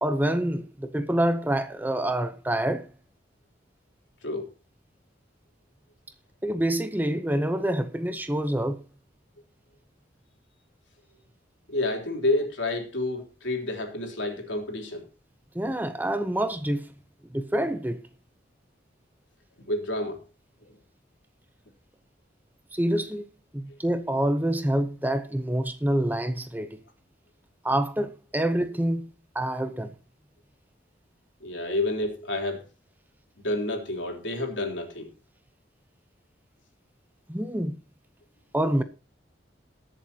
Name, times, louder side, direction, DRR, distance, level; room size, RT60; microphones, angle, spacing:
voice 1, 0.0-2.9 6.4-8.8 15.5-16.9 17.3-18.0 22.7-23.3 23.5-26.8 27.6-29.9 37.3-37.7 38.5-38.8, right 1 dB, 10° right, 0.8 m, -27 dB
voice 2, 11.7-15.1 19.7-20.2 31.4-32.6 33.4-35.1, left 2 dB, 80° left, 3.5 m, -29 dB
21.5 x 7.3 x 2.8 m
head